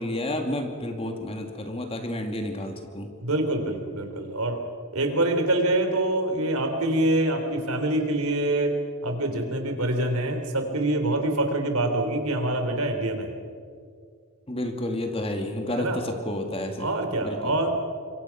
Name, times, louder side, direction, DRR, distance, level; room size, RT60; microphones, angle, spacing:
voice 1, 0.0-3.1 14.5-16.9 17.2-17.6, left 1 dB, 25° left, 4 dB, 2.3 m, -30 dB
voice 2, 3.2-4.6 4.9-8.7 9.0-13.3 15.7-16.0 16.8-17.7, right 1 dB, 85° right, 5 dB, 3.4 m, -25 dB
26.5 x 23.0 x 5.9 m, 2.1 s
head